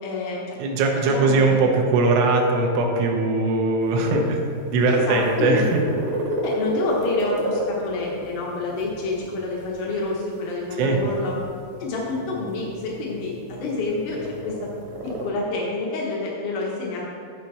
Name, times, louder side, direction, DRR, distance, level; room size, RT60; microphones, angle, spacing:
voice 1, 0.0-0.6 1.0-1.6 4.9-5.7 6.4-11.4 11.8-14.5 15.0-17.1, left 3 dB, 85° left, -3 dB, 1.8 m, -28 dB
voice 2, 0.6-4.4 4.7-5.8 10.8-11.0, right 3 dB, 80° right, 1 dB, 3.3 m, -20 dB
sound 1, 3.8-15.3, right 1 dB, 60° right, 1.9 m, -33 dB
13.5 x 4.7 x 4.1 m, 2.4 s
omnidirectional pair, 5.4 m